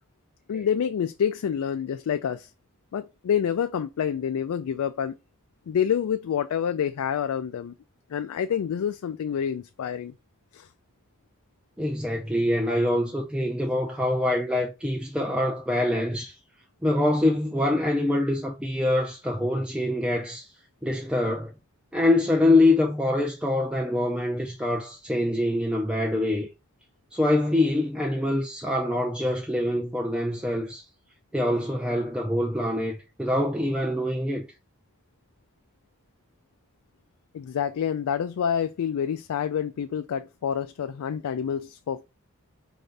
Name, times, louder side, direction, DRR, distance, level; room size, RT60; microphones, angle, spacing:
voice 1, 0.5-2.5 2.9-5.1 5.7-7.7 8.1-10.1 10.5-10.7 37.3-42.0, left 8 dB, 85° left, 0.3 m, -27 dB
voice 2, 11.8-16.4 16.8-20.5 20.8-21.5 21.9-26.5 27.1-30.8 31.3-34.5, left 1 dB, 5° right, 0.4 m, -25 dB
4.7 x 2.7 x 3.2 m
head